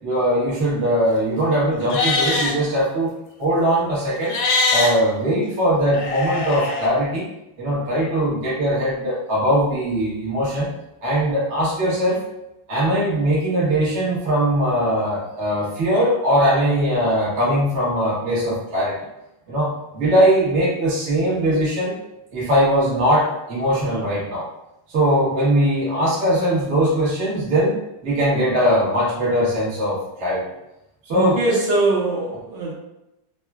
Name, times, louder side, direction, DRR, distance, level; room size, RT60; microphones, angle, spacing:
voice 1, 0.0-3.1 3.4-4.4 4.7-7.2 7.6-10.7 11.0-12.2 12.7-18.9 19.5-21.9 22.3-24.4 24.9-30.4 31.0-31.4, equal, 50° right, -7 dB, 0.8 m, -20 dB
Livestock farm animals working animals, 1.8-2.5 4.2-4.9 5.9-6.9, left 3 dB, 75° left, 1.3 m, -22 dB
voice 2, 31.1-32.7, right 2 dB, 75° right, -4 dB, 1.2 m, -21 dB
3.6 x 2.0 x 2.2 m, 0.89 s
omnidirectional pair, 2.4 m